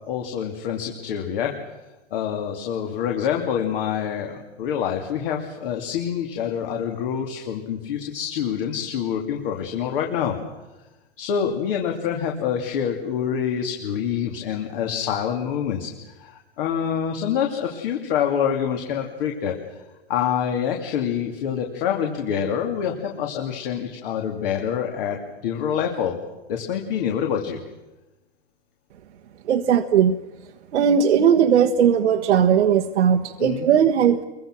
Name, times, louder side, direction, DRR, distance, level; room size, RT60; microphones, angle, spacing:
voice 1, 0.1-1.5 2.1-10.4 11.2-19.8 20.1-26.2 26.5-27.6 33.4-33.7, left 8 dB, 50° left, 2 dB, 2.9 m, -26 dB
voice 2, 29.5-30.1 30.7-34.2, right 8 dB, 65° right, 4 dB, 1.4 m, -18 dB
28.5 x 23.0 x 6.3 m, 1.1 s
hypercardioid pair, 135°, 36 cm